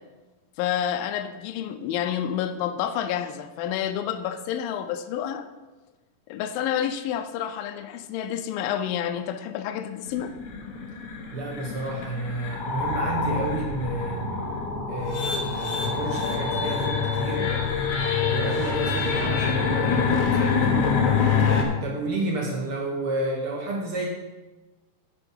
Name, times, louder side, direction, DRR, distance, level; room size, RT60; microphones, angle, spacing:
voice 1, 0.6-5.5 6.3-10.3, left 10 dB, 85° left, 8 dB, 2.4 m, -29 dB
sound 1, 10.1-21.6, left 5 dB, 60° left, 2.2 m, -25 dB
voice 2, 11.3-14.3 14.9-17.5 18.2-20.8 21.8-24.1, right 2 dB, 70° right, 0 dB, 1.3 m, -31 dB
9.4 x 6.8 x 5.5 m, 1.2 s
omnidirectional pair, 4.2 m